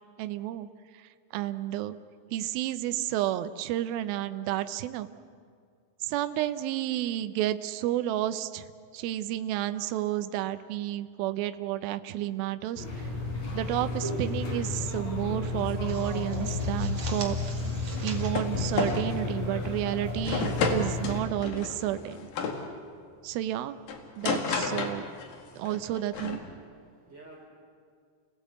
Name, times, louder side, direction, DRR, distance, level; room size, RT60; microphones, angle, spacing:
voice 1, 0.2-0.7 0.9-1.0 1.3-2.0 2.3-5.1 6.0-8.7 8.9-13.1 13.5-17.4 18.0-22.2 23.2-23.8 24.2-25.1 25.6-26.4, right 13 dB, 85° right, 10 dB, 2.1 m, -31 dB
sound 1, 12.8-21.2, left 3 dB, 40° left, 5.3 m, -32 dB
sound 2, 13.6-14.5 14.8-15.0 15.4-19.9, right 4 dB, 45° right, 2.8 m, -45 dB
sound 3, 17.9-18.5 18.8-19.1 19.6-19.8 20.2-22.6 23.9-25.4 25.6-26.4, left 5 dB, 55° left, 3.1 m, -31 dB
voice 2, 26.8-27.5, right 2 dB, 25° right, -2 dB, 5.1 m, -52 dB
28.5 x 17.5 x 8.3 m, 2.1 s
omnidirectional pair, 5.3 m